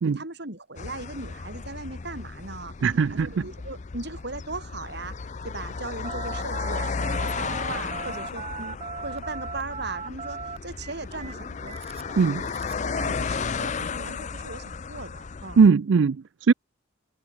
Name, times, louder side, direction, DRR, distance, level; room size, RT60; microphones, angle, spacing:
voice 1, 0.1-2.7 3.1-5.2 5.4-12.5 12.8-15.6, right 3 dB, 60° right, 4.7 m, -38 dB
sound 1, 0.8-15.7, left 5 dB, 40° left, 0.5 m, -34 dB
voice 2, 2.8-3.5 12.2-12.4 15.6-16.5, right 5 dB, 80° right, 0.4 m, -20 dB
Telephone, 6.0-12.9, right 5 dB, 35° right, 3.2 m, -38 dB
head